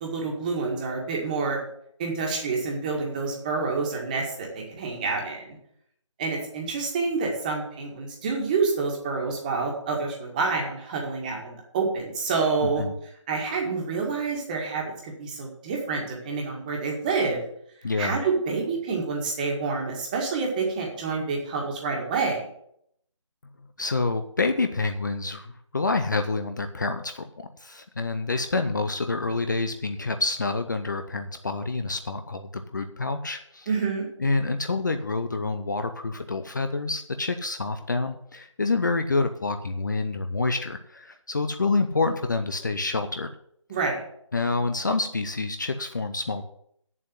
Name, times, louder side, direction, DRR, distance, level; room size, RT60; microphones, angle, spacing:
voice 1, 0.0-1.6 2.0-5.6 6.2-12.8 13.3-17.4 18.0-22.4 33.7-34.1 43.7-44.0, right 4 dB, 15° right, -1 dB, 1.8 m, -28 dB
voice 2, 12.6-12.9 17.8-18.2 23.8-33.7 34.2-43.3 44.3-46.5, left 3 dB, 35° left, 8 dB, 0.7 m, -27 dB
8.2 x 7.4 x 8.1 m, 0.70 s
figure-of-eight pair, 160°, 16 cm